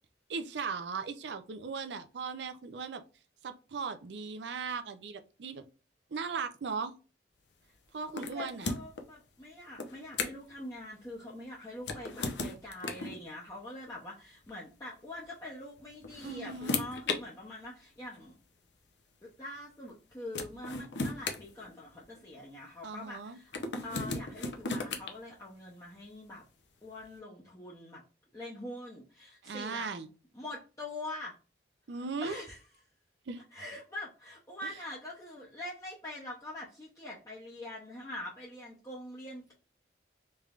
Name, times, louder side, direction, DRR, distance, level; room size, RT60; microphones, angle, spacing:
voice 1, 0.3-3.0 3.4-5.6 6.1-6.9 7.9-8.7 16.2-16.8 22.8-23.4 29.4-30.1 31.9-32.4 33.3-33.4 34.6-34.7, right 5 dB, 75° right, 0.5 m, -38 dB
voice 2, 8.0-18.4 19.2-23.5 23.8-26.4 26.8-28.0 28.3-30.0 30.3-31.3 32.0-32.6 33.5-39.5, left 1 dB, 20° left, 0.6 m, -44 dB
sound 1, 8.2-9.0 9.8-10.5 11.8-13.2 14.4-14.6 15.8-17.2 18.2-18.3 19.9-20.0 20.3-22.2 23.5-25.1, left 3 dB, 80° left, 0.6 m, -36 dB
3.4 x 3.2 x 2.4 m
head